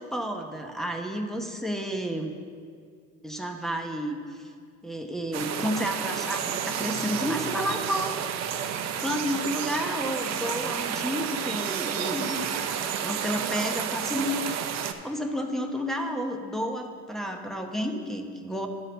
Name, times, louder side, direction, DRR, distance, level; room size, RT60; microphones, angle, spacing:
voice 1, 0.0-2.3 3.2-4.5 4.8-8.3 9.0-12.5 13.0-18.7, equal, ahead, 2 dB, 0.9 m, -31 dB
sound 1, 5.3-14.9, right 8 dB, 50° right, 0.7 m, -31 dB
11.0 x 4.0 x 6.7 m, 2.1 s
supercardioid pair, 85°, 34 cm